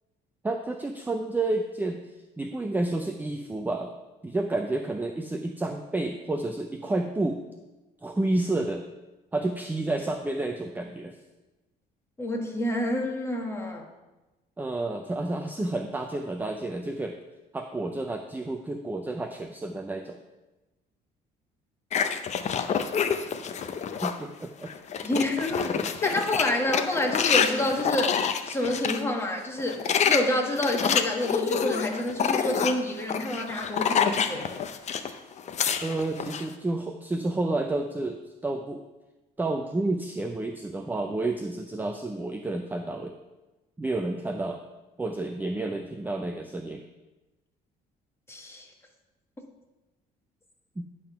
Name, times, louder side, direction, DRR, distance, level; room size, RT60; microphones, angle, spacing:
voice 1, 0.4-2.0 2.4-3.9 4.2-7.4 8.0-8.9 9.3-11.2 14.6-17.2 17.5-20.2 24.0-24.7 25.1-25.2 25.8-25.9 35.8-38.9 39.4-43.2 43.8-44.6 45.0-46.8 50.8-50.9, right 2 dB, 10° right, 5 dB, 0.5 m, -30 dB
voice 2, 12.2-13.9 25.0-28.2 28.4-34.5 48.3-48.7, left 1 dB, 15° left, 2 dB, 1.4 m, -28 dB
sound 1, 21.9-24.2 24.6-29.0 29.6-35.1 35.4-36.4, left 7 dB, 45° left, 0.6 m, -27 dB
10.5 x 3.7 x 5.8 m, 1.1 s
cardioid pair, 110°, 17 cm